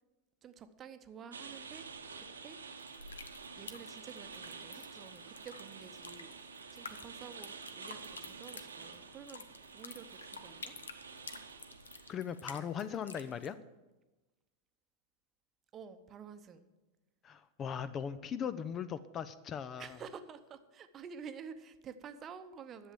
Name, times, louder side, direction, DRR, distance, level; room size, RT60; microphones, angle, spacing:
voice 1, 0.4-2.6 3.5-6.4 6.7-10.7 15.7-16.7 19.8-22.9, right 6 dB, 25° right, 10 dB, 0.9 m, -50 dB
sound 1, 1.3-12.1, right 5 dB, 75° right, 1.0 m, -49 dB
sound 2, 2.8-13.5, left 4 dB, 70° left, 0.8 m, -52 dB
voice 2, 12.1-13.6 17.2-20.0, left 8 dB, 30° left, 14 dB, 0.5 m, -39 dB
11.0 x 7.4 x 7.7 m, 1.1 s
figure-of-eight pair, 90°, 0 cm